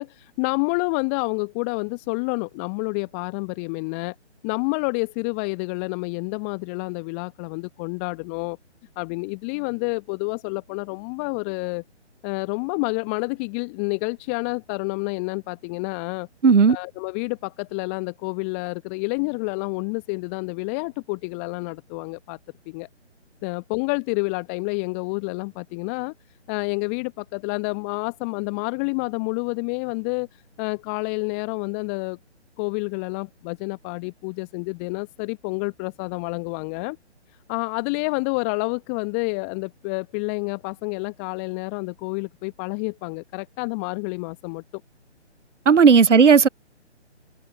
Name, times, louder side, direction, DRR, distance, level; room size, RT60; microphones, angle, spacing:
voice 1, 0.0-4.1 4.4-8.6 9.0-11.8 12.2-16.3 16.7-22.4 22.7-22.9 23.4-26.1 26.5-32.2 32.6-37.0 37.5-44.6, left 35 dB, 10° left, 1.0 m, -29 dB
voice 2, 16.4-16.8 45.7-46.5, right 5 dB, 85° right, 0.7 m, -13 dB
figure-of-eight pair, 140°, 35 cm